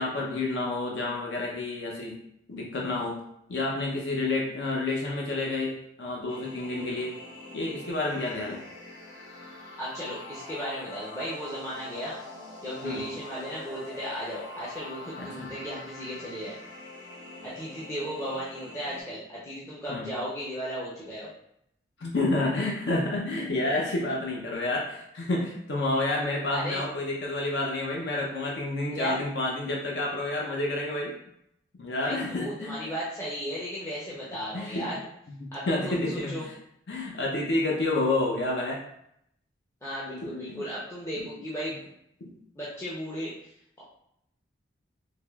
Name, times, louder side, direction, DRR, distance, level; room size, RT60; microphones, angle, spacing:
voice 1, 0.0-2.2 2.5-3.2 3.5-7.1 7.5-8.6 12.8-13.0 15.2-15.5 19.9-20.1 22.0-31.1 31.8-32.8 34.5-34.9 35.4-36.6 36.9-38.8 40.2-40.7 41.2-41.3 42.2-42.3, left 2 dB, 65° left, -2 dB, 0.5 m, -29 dB
sound 1, 6.3-19.0, left 2 dB, 80° left, 1.0 m, -44 dB
voice 2, 9.8-12.2 12.6-16.6 17.4-21.3 26.5-26.8 28.9-29.2 32.0-35.0 35.5-36.5 39.8-41.9 42.6-43.5, equal, 15° left, -8 dB, 0.5 m, -35 dB
3.5 x 2.8 x 2.2 m, 0.75 s
head